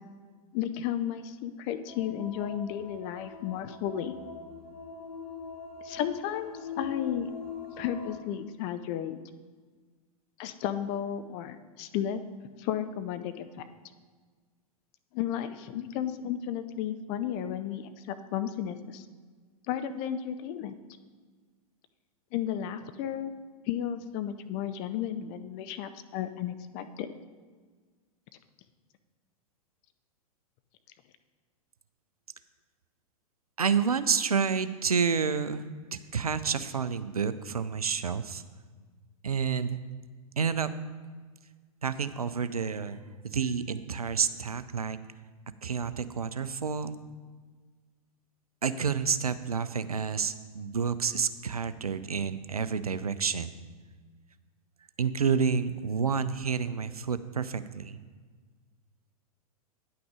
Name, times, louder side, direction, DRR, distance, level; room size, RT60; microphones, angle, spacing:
voice 1, 0.5-4.1 5.8-7.3 7.8-9.2 10.4-12.2 12.6-13.7 15.1-19.1 19.7-20.8 22.3-23.3 23.7-27.1, left 10 dB, 30° left, 10 dB, 0.5 m, -33 dB
sound 1, 1.9-8.2, left 6 dB, 70° left, 2.6 m, -42 dB
voice 2, 33.6-38.4 39.2-39.8 40.4-40.7 41.8-45.0 45.6-47.0 48.6-53.5 55.0-58.0, right 6 dB, 80° right, 13 dB, 0.5 m, -29 dB
9.8 x 5.9 x 5.0 m, 1.5 s
figure-of-eight pair, 100°, 19 cm